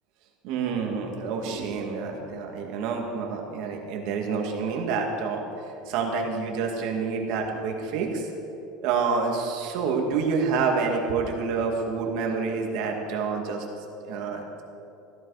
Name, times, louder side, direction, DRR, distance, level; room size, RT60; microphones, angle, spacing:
voice 1, 0.4-5.4 5.9-8.3 8.8-13.6 14.0-14.4, right 5 dB, 50° right, 1 dB, 2.2 m, -28 dB
16.0 x 14.5 x 5.0 m, 2.8 s
cardioid pair, 180°, 0 cm